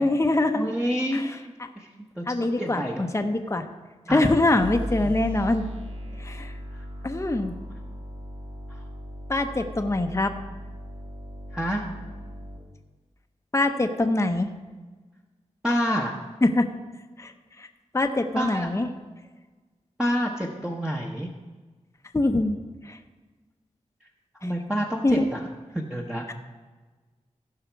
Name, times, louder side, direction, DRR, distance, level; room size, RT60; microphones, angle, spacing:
voice 1, 0.0-0.7 1.1-1.4 2.3-3.7 4.1-5.7 6.2-6.5 7.0-7.6 9.3-10.3 13.5-14.5 16.4-16.7 17.2-17.3 17.6-17.7 17.9-18.9 22.1-22.6 22.8-23.0 24.4-24.5 25.0-25.3, left 2 dB, 25° left, 5 dB, 0.8 m, -24 dB
voice 2, 0.5-1.4 1.8-3.1 4.1-4.2 5.0-5.1 8.7-8.8 11.5-11.8 15.6-16.2 18.3-18.7 20.0-21.3 24.4-26.3, equal, 5° right, -2 dB, 1.1 m, -28 dB
sound 1, 4.6-12.6, equal, 55° right, 2.0 m, -37 dB
16.0 x 5.7 x 4.6 m, 1.3 s
cardioid pair, 55°, 12 cm